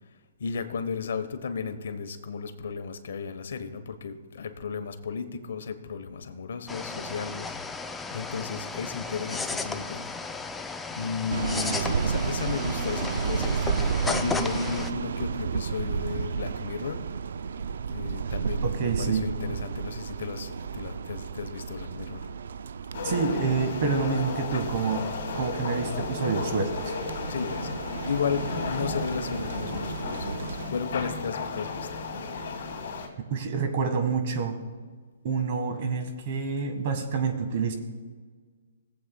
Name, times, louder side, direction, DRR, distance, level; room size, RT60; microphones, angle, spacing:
voice 1, 0.4-10.1 10.9-17.0 17.9-22.3 24.5-24.6 27.3-31.9, left 5 dB, 70° left, 9 dB, 0.9 m, -34 dB
sound 1, 6.7-14.9, left 3 dB, 5° left, 0.4 m, -34 dB
sound 2, 11.3-30.7, right 6 dB, 70° right, 0.3 m, -33 dB
voice 2, 18.6-19.3 23.0-25.1 25.3-26.9 33.3-34.6 35.2-37.7, right 5 dB, 45° right, 6 dB, 1.4 m, -27 dB
sound 3, 22.9-33.1, left 4 dB, 55° left, 2.4 m, -34 dB
19.0 x 7.9 x 2.2 m, 1.5 s
hypercardioid pair, 155°, 0 cm